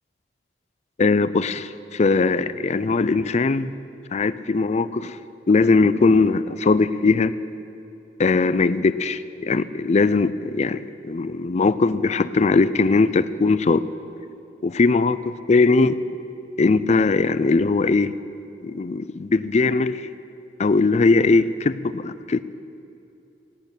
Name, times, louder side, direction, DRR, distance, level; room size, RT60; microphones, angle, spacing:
voice 1, 1.0-3.7 4.1-5.2 5.5-7.3 8.2-13.8 14.6-15.2 15.5-16.0 16.6-18.1 18.6-20.1 20.6-22.4, left 3 dB, 40° left, 14 dB, 0.4 m, -20 dB
17.0 x 6.6 x 9.8 m, 2.8 s
head